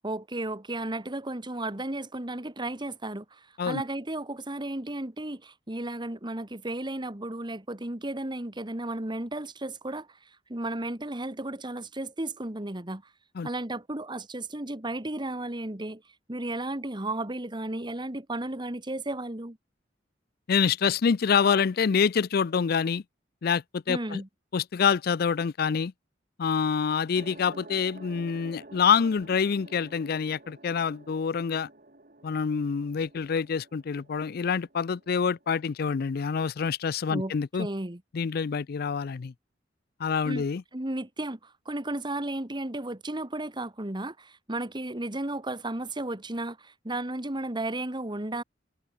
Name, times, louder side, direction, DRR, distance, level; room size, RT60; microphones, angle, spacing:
voice 1, 0.0-10.2 10.5-13.0 13.4-16.0 16.3-19.6 23.9-24.3 37.1-37.3 37.6-38.0 40.3-40.4 40.7-48.4, right 1 dB, 25° right, 1.9 m, -34 dB
voice 2, 20.5-23.0 23.4-24.2 24.5-25.9 26.4-31.7 32.2-37.7 38.1-39.3 40.0-40.6, left 6 dB, 55° left, 0.4 m, -26 dB
sound 1, 27.1-35.9, right 2 dB, 50° right, 4.7 m, -50 dB
head